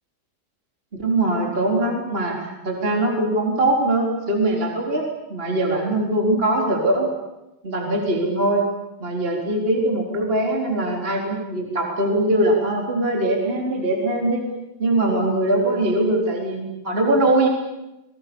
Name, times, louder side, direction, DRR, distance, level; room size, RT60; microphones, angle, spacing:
voice 1, 1.0-7.1 7.6-8.7 9.0-14.4 14.8-17.5, right 1 dB, 15° right, 0 dB, 3.5 m, -21 dB
28.0 x 23.0 x 7.1 m, 0.98 s
omnidirectional pair, 5.5 m